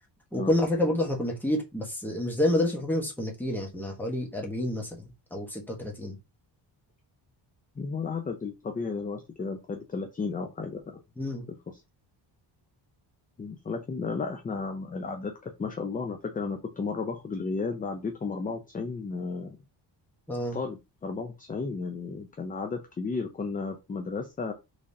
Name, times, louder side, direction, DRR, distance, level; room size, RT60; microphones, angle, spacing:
voice 1, 0.3-6.2 11.2-11.5 20.3-20.6, left 1 dB, 5° left, 0.9 m, -29 dB
voice 2, 7.8-11.0 11.5-11.6 13.4-19.6 20.5-24.5, left 4 dB, 20° left, 0.4 m, -33 dB
3.7 x 3.3 x 2.6 m
cardioid pair, 145°, 45 cm